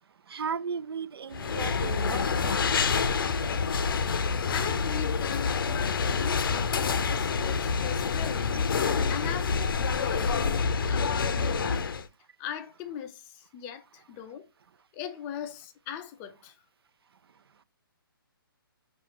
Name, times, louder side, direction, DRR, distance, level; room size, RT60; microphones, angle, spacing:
voice 1, 0.3-2.6, right 6 dB, 80° right, 0.4 m, -35 dB
sound 1, 1.3-12.1, left 5 dB, 65° left, 0.5 m, -27 dB
voice 2, 4.5-11.9 12.4-14.5 14.9-16.6, left 9 dB, 15° left, 0.4 m, -39 dB
5.6 x 2.4 x 2.8 m
hypercardioid pair, 155°, 12 cm